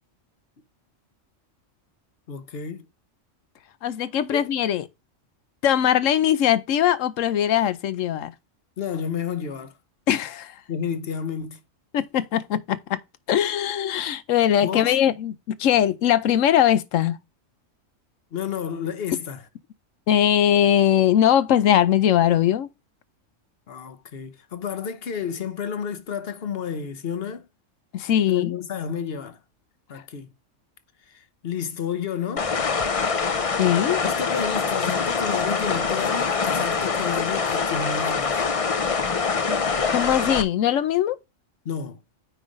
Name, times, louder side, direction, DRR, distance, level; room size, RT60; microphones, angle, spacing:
voice 1, 2.3-2.9 4.3-4.5 8.8-9.8 10.7-11.6 14.6-15.0 18.3-19.5 23.7-27.5 28.3-29.4 29.9-30.3 31.1-32.5 34.0-38.4 41.6-42.0, left 7 dB, 55° left, 1.0 m, -31 dB
voice 2, 3.8-4.8 5.6-8.3 10.1-10.5 11.9-13.0 13.3-17.2 20.1-22.7 27.9-28.5 33.6-34.0 39.9-41.2, left 10 dB, 80° left, 1.0 m, -21 dB
sound 1, 32.4-40.4, left 5 dB, 35° left, 0.6 m, -24 dB
9.1 x 3.2 x 5.1 m
omnidirectional pair, 1.3 m